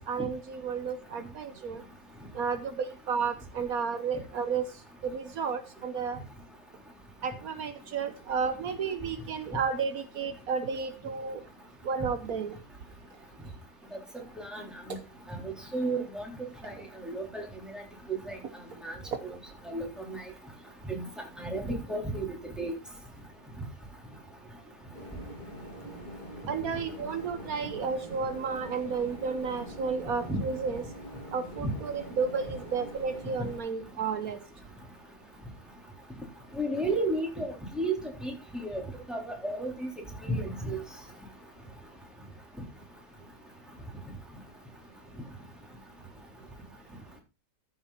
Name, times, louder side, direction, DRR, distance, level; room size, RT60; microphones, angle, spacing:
voice 1, 0.1-1.8 2.3-4.6 5.0-6.2 7.2-11.4 11.8-12.5 26.5-30.8 31.3-34.4, right 5 dB, 75° right, 10 dB, 1.5 m, -32 dB
voice 2, 14.1-15.0 15.7-16.7 17.0-17.4 17.7-17.8 18.1-18.4 18.8-18.9 19.7-20.2 20.9-21.0 21.4-22.7 30.3-30.4 31.6-31.7 36.6-37.9 38.2-38.8 39.1-39.9 40.2-40.8, right 2 dB, ahead, 0 dB, 3.9 m, -32 dB
sound 1, 24.9-33.6, equal, 30° left, 3.7 m, -44 dB
14.5 x 7.4 x 4.2 m, 0.28 s
omnidirectional pair, 1.6 m